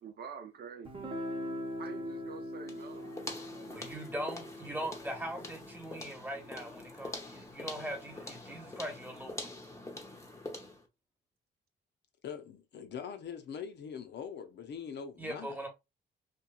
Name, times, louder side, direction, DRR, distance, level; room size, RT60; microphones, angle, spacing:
voice 1, 0.0-1.1 1.8-3.1, right 6 dB, 55° right, 0.5 m, -46 dB
Guitar, 0.9-6.6, equal, 25° right, 0.8 m, -42 dB
sound 1, 2.6-10.9, left 2 dB, 15° left, 0.7 m, -45 dB
voice 2, 3.7-9.5 15.2-15.7, right 1 dB, 10° right, 1.1 m, -40 dB
voice 3, 12.2-15.6, left 7 dB, 60° left, 0.6 m, -42 dB
2.9 x 2.3 x 2.3 m
cardioid pair, 90°, 20 cm